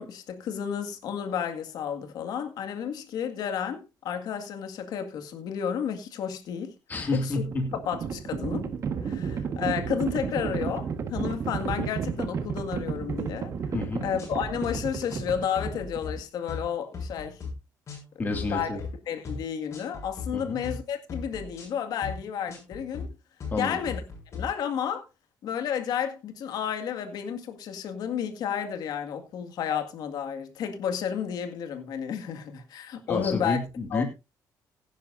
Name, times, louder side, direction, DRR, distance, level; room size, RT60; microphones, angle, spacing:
voice 1, 0.0-6.8 7.1-7.4 7.9-8.7 9.0-13.5 14.0-17.4 18.4-23.1 23.5-24.0 24.3-25.0 25.4-33.6 33.9-34.0, left 8 dB, 65° left, 2.0 m, -32 dB
voice 2, 6.9-7.7 13.7-14.0 18.2-18.8 20.3-20.6 23.5-23.8 33.1-34.0, left 3 dB, 25° left, 2.3 m, -29 dB
Livestock farm animals working animals, 7.2-16.2, right 6 dB, 40° right, 1.5 m, -32 dB
sound 1, 13.8-13.9 14.2-14.7 15.1-15.3 15.6-16.1 16.5-16.7 16.9-17.5 17.9-18.0 18.3-18.9 19.2-19.4 19.7-20.3 20.6-20.8 21.1-21.7 22.0-22.2 22.5-23.1 23.4-23.6 23.9-24.4, left 4 dB, 40° left, 7.2 m, -37 dB
16.5 x 10.5 x 2.7 m
cardioid pair, 150°, 7 cm